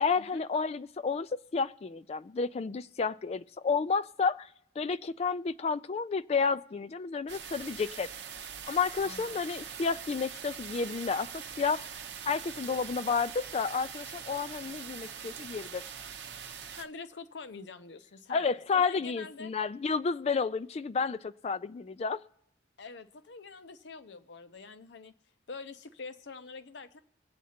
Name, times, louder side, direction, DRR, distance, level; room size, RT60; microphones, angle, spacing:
voice 1, 0.0-4.5 4.8-8.1 8.7-11.9 12.3-15.8 18.3-22.2, left 5 dB, 35° left, 0.3 m, -31 dB
sound 1, 7.3-16.8, right 7 dB, 70° right, 0.8 m, -43 dB
voice 2, 9.0-9.5 16.8-19.5 22.8-25.1 25.5-27.0, left 4 dB, 70° left, 0.7 m, -45 dB
22.0 x 8.3 x 2.8 m
head